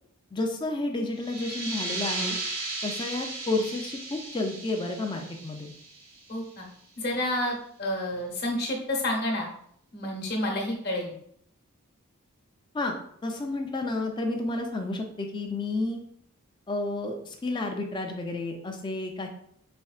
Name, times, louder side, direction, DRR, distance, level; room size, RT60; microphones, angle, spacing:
voice 1, 0.3-2.4 2.8-5.7 12.7-13.0 13.2-16.0 16.7-19.3, left 2 dB, 20° left, 3 dB, 0.4 m, -31 dB
sound 1, 1.1-6.5, right 2 dB, 90° right, 1.6 m, -36 dB
voice 2, 6.3-6.7 7.0-9.5 9.9-11.1, left 1 dB, 45° left, 1 dB, 0.9 m, -29 dB
4.2 x 3.5 x 2.4 m, 0.68 s
head